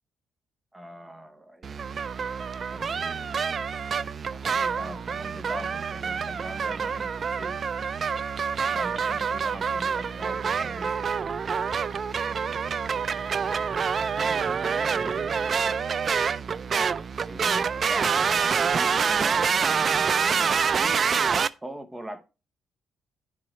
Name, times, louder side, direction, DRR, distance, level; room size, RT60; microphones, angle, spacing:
voice 1, 0.7-1.8 2.7-3.6 4.3-7.6 8.6-11.0 12.2-12.8 14.2-15.4 17.2-20.9 21.6-22.2, right 1 dB, 10° right, 1.0 m, -41 dB
sound 1, 1.6-21.5, right 6 dB, 35° right, 0.4 m, -26 dB
10.5 x 5.0 x 4.3 m
cardioid pair, 160°, 0 cm